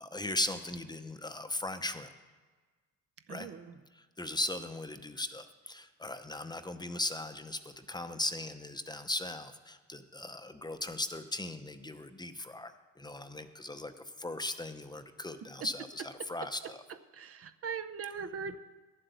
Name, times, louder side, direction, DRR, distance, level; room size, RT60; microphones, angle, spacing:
voice 1, 0.0-2.1 3.3-3.5 3.9-16.8 18.0-18.1, left 2 dB, 15° left, 9 dB, 0.8 m, -38 dB
voice 2, 17.2-18.6, right 6 dB, 50° right, 11 dB, 0.7 m, -39 dB
11.5 x 7.7 x 8.1 m, 1.4 s
cardioid pair, 90°, 30 cm